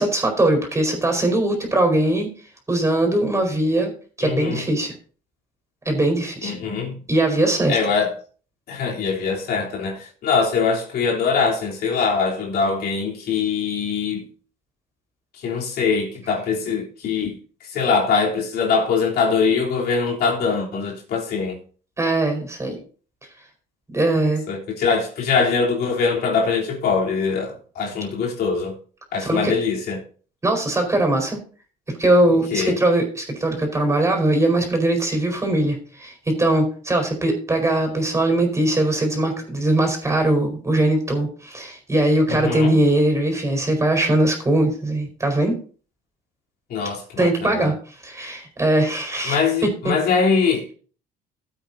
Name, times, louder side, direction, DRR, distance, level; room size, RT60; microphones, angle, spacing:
voice 1, 0.0-2.3 2.7-3.9 4.2-4.9 5.8-6.5 7.1-7.8 22.0-22.8 23.9-24.4 29.2-29.5 30.4-31.4 32.0-45.5 47.2-47.7 48.0-49.4, right 1 dB, 15° right, 4.5 m, -20 dB
voice 2, 4.2-4.6 6.4-7.0 7.7-8.2 8.7-14.3 15.3-21.6 24.5-28.8 29.1-30.0 32.5-32.8 42.3-42.8 46.7-47.7 49.2-50.7, left 5 dB, 70° left, 3.3 m, -22 dB
16.0 x 8.3 x 2.7 m
cardioid pair, 110°, 17 cm